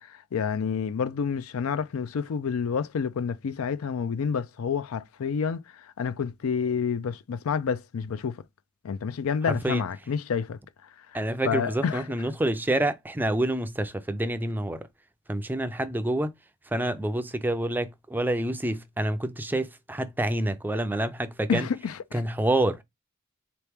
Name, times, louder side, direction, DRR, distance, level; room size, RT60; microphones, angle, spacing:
voice 1, 0.3-5.6 6.0-8.4 8.8-10.6 11.5-12.0 21.5-21.9, left 6 dB, 75° left, 0.4 m, -28 dB
voice 2, 9.5-9.8 11.1-14.9 15.3-16.3 16.7-21.7 22.1-22.8, right 1 dB, 10° right, 0.4 m, -27 dB
3.9 x 3.0 x 3.4 m
head